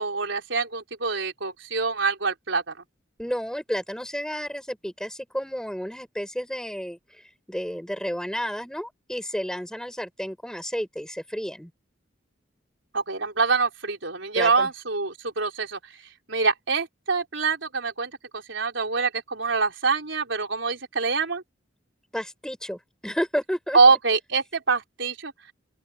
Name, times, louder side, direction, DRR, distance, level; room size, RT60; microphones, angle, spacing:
voice 1, 0.0-2.7 12.9-15.8 16.3-21.4 23.7-25.3, right 4 dB, 75° right, 4.1 m, -25 dB
voice 2, 3.2-11.7 14.4-14.7 22.1-23.8, equal, 5° left, 5.9 m, -31 dB
open air
head